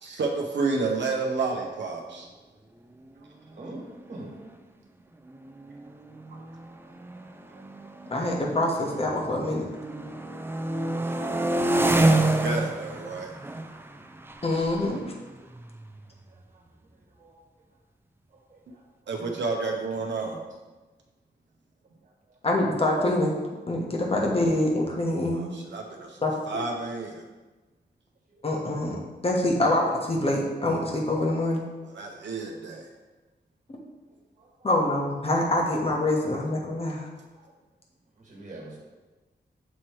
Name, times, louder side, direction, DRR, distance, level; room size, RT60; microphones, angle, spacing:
voice 1, 0.0-2.3 6.3-6.4 12.2-13.3 19.1-20.4 25.3-26.2 26.5-27.2 31.9-32.9, right 3 dB, 80° right, 1 dB, 0.7 m, -30 dB
voice 2, 3.5-4.3 7.5-7.6 17.2-17.3 18.5-18.6 19.2-19.4 20.2-20.4 34.4-34.5 38.2-38.8, right 2 dB, 45° right, -3 dB, 1.7 m, -42 dB
sound 1, 3.8-3.9 4.2-4.5 5.3-9.2 9.6-16.2, right 2 dB, 10° right, 0.3 m, -28 dB
voice 3, 8.1-9.7 14.4-15.0 22.4-23.3 23.7-25.5 26.2-26.6 28.4-31.6 34.6-37.1, left 1 dB, 30° left, -1 dB, 1.1 m, -25 dB
7.3 x 3.1 x 4.5 m, 1.2 s
wide cardioid pair, 120°, 18 cm